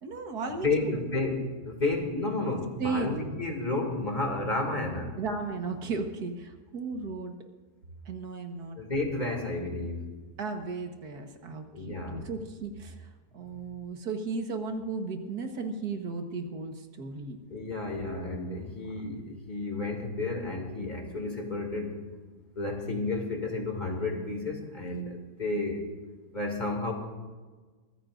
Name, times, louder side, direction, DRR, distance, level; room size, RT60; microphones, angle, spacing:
voice 1, 0.0-1.0 2.8-3.1 5.2-7.3 8.1-8.8 10.4-17.4, right 4 dB, 75° right, 5 dB, 1.9 m, -35 dB
voice 2, 0.6-5.1 8.8-10.0 11.7-12.2 17.5-21.9 22.6-25.8 26.3-26.9, left 2 dB, 30° left, 2 dB, 2.5 m, -31 dB
24.0 x 15.0 x 2.6 m, 1.4 s
omnidirectional pair, 1.7 m